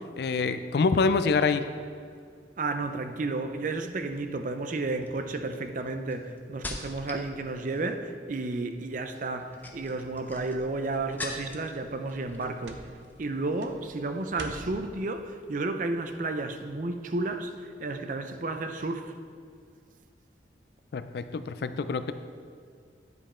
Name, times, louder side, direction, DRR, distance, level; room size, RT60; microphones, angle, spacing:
voice 1, 0.2-1.6 20.9-22.1, left 4 dB, 65° left, 11 dB, 0.4 m, -26 dB
voice 2, 2.6-12.8 13.2-19.1, right 2 dB, 45° right, 7 dB, 0.5 m, -32 dB
sound 1, 3.8-4.2 4.9-7.3 7.6-8.1 9.3-11.7 12.1-12.7 13.0-13.2, left 2 dB, 10° left, 0.6 m, -42 dB
sound 2, 9.4-14.9, right 2 dB, 90° right, 0.7 m, -48 dB
9.6 x 5.2 x 4.3 m, 2.2 s
head